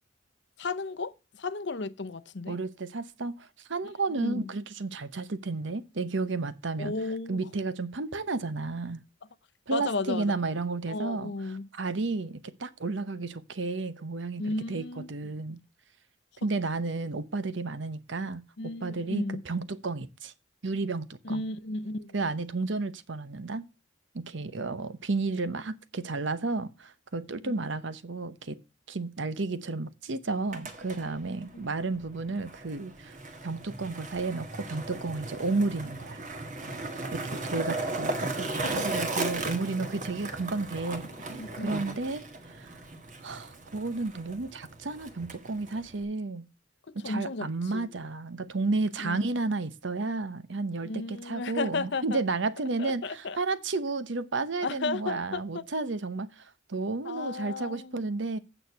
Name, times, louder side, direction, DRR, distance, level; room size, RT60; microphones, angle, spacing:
voice 1, 0.6-2.6 4.1-4.5 6.8-7.5 9.7-10.3 10.9-11.7 14.4-15.1 18.6-19.4 21.2-22.1 27.4-27.6 31.4-31.7 38.6-38.9 41.3-41.7 46.9-47.5 47.7-47.9 49.0-49.2 50.8-52.2 52.8-53.4 54.6-55.7 57.0-58.0, left 3 dB, 60° left, 0.7 m, -34 dB
voice 2, 2.5-6.9 7.3-9.0 9.7-15.6 16.4-18.4 18.8-20.3 20.6-21.4 22.1-23.7 24.1-28.6 28.9-33.1 33.4-36.2 37.0-41.1 41.6-42.8 43.2-46.5 46.9-58.4, right 3 dB, 65° right, 0.9 m, -32 dB
Skateboard, 30.4-46.0, right 2 dB, 40° right, 1.6 m, -37 dB
9.1 x 6.4 x 5.6 m
head